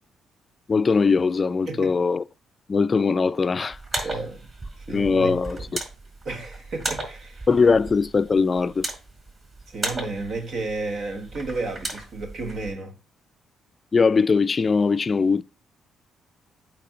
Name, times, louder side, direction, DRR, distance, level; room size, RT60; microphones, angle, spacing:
voice 1, 0.7-2.2 2.7-4.1 4.9-5.6 7.5-8.9 13.9-15.4, left 4 dB, 35° left, 0.4 m, -21 dB
voice 2, 1.7-2.0 4.0-4.4 4.8-5.6 6.2-7.5 9.7-13.0, right 3 dB, 60° right, 1.2 m, -32 dB
sound 1, 3.7-12.7, right 2 dB, 35° right, 4.8 m, -36 dB
8.5 x 3.3 x 6.1 m
cardioid pair, 90°, 0 cm